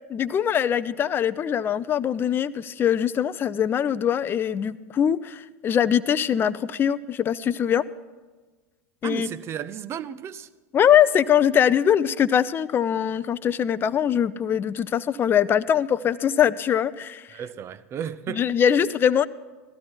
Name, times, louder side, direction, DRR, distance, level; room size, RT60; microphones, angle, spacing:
voice 1, 0.1-7.8 9.0-9.3 10.7-17.2 18.3-19.3, left 9 dB, 25° left, 0.5 m, -22 dB
voice 2, 9.0-10.5 17.3-18.5, right 9 dB, 35° right, 0.6 m, -34 dB
17.0 x 13.0 x 4.5 m
hypercardioid pair, 90°, 8 cm